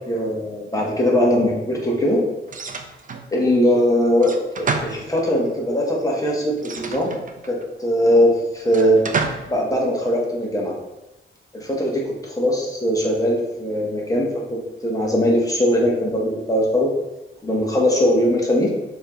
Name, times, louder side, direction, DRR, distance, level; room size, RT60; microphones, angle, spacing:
voice 1, 0.1-2.2 3.3-7.1 7.4-9.0 9.5-10.7 11.5-16.9 17.4-18.7, equal, 15° left, -3 dB, 1.7 m, -20 dB
sound 1, 2.5-3.3 4.2-5.5 6.6-7.6 8.7-9.6, right 4 dB, 40° right, 0.6 m, -29 dB
6.0 x 3.5 x 4.5 m, 0.98 s
cardioid pair, 105°, 21 cm